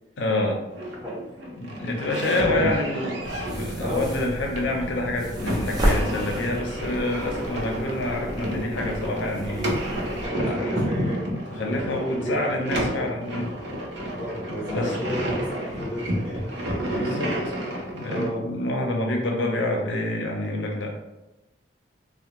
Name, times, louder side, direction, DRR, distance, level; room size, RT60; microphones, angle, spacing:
voice 1, 0.2-0.6 1.6-10.7 11.5-13.5 14.5-14.9 16.9-17.5 17.9-20.9, left 1 dB, 75° left, 1 dB, 0.5 m, -28 dB
sound 1, 0.7-18.3, right 1 dB, 70° right, 0.7 m, -30 dB
sound 2, 3.2-10.3, equal, 20° right, 0.4 m, -31 dB
voice 2, 3.8-4.2 10.2-11.2 11.8-12.4 14.2-16.6 18.0-18.4, equal, 5° right, -12 dB, 1.5 m, -32 dB
3.4 x 2.1 x 2.9 m, 1.0 s
head